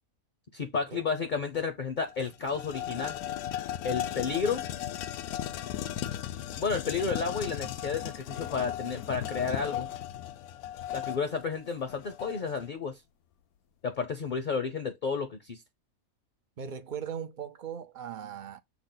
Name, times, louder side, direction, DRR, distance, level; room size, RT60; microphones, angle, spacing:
voice 1, 0.5-3.2 3.8-4.7 6.6-9.9 10.9-13.0 13.8-15.6, left 5 dB, 50° left, 0.6 m, -32 dB
sound 1, 1.5-1.6 2.0-12.7, left 11 dB, 85° left, 1.1 m, -36 dB
voice 2, 16.6-18.6, right 8 dB, 70° right, 0.4 m, -39 dB
6.0 x 2.1 x 3.8 m
omnidirectional pair, 1.5 m